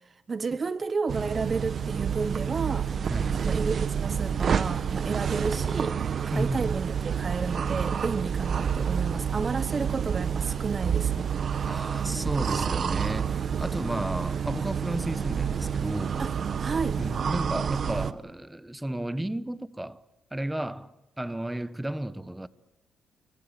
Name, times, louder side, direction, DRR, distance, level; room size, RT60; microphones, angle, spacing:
voice 1, 0.1-2.9 3.4-6.0 6.3-11.3 16.2-16.3 16.6-17.0, right 4 dB, 35° right, 0.9 m, -31 dB
sound 1, 1.1-18.1, right 7 dB, 50° right, 1.2 m, -29 dB
voice 2, 6.3-6.7 11.6-16.2 17.0-20.0 20.3-22.5, right 1 dB, 10° right, 1.2 m, -33 dB
29.5 x 23.5 x 8.1 m
cardioid pair, 90°, 0 cm